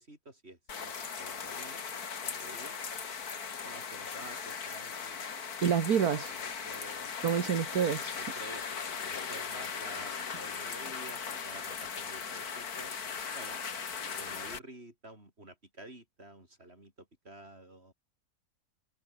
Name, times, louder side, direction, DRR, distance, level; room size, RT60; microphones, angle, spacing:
voice 1, 0.0-1.9 2.2-2.8 3.6-5.2 5.5-5.9 6.2-7.1 8.2-8.7 9.1-12.9 13.3-13.6 14.0-17.9, right 1 dB, 40° right, 7.0 m, -50 dB
sound 1, 0.7-14.6, left 6 dB, 70° left, 2.3 m, -38 dB
voice 2, 5.6-6.3 7.2-8.2, right 8 dB, 70° right, 1.9 m, -28 dB
omnidirectional pair, 1.7 m